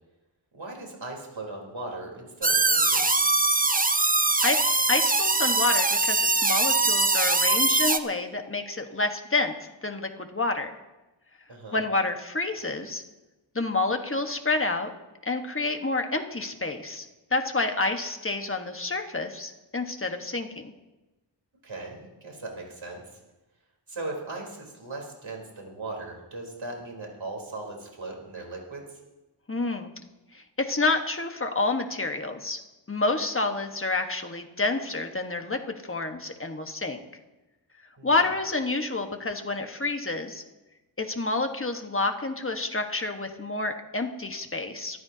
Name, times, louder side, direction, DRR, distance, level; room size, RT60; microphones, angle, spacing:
voice 1, 0.5-3.0 11.5-11.8 21.6-23.2 23.9-28.8 38.0-38.3, right 2 dB, 75° right, -1 dB, 3.9 m, -38 dB
sound 1, 2.4-8.0, right 3 dB, 20° right, 0.7 m, -22 dB
voice 2, 4.9-9.5 9.8-10.7 11.7-13.0 13.5-14.9 15.2-20.7 29.5-29.9 30.3-32.6 32.9-37.0 38.0-40.4 41.0-45.0, left 3 dB, 25° left, 5 dB, 1.4 m, -28 dB
23.0 x 14.0 x 2.8 m, 1.1 s
wide cardioid pair, 65°, 47 cm